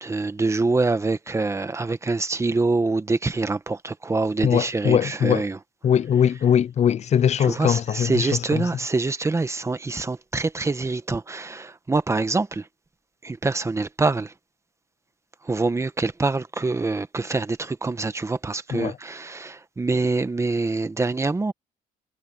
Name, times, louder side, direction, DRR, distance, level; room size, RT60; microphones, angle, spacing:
voice 1, 0.0-5.6 7.4-12.7 13.2-14.3 15.4-21.5, right 3 dB, 15° right, 1.2 m, -25 dB
voice 2, 4.4-5.5 5.8-8.6 18.7-19.0, left 9 dB, 45° left, 0.5 m, -21 dB
cardioid pair, 120°, 16 cm